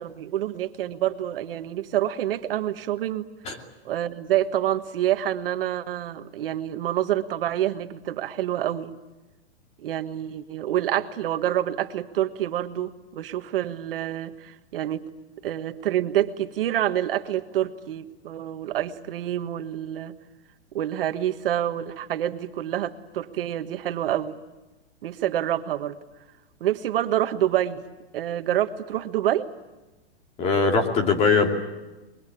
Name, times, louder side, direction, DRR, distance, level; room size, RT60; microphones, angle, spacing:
voice 1, 0.0-3.3 3.8-8.9 9.8-15.1 15.4-20.1 20.7-24.3 25.0-26.0 26.6-27.8 28.1-29.5, right 12 dB, 55° right, 9 dB, 1.5 m, -27 dB
voice 2, 30.4-31.5, left 4 dB, 20° left, 3 dB, 2.7 m, -21 dB
25.0 x 22.5 x 8.6 m, 1.1 s
hypercardioid pair, 160°, 33 cm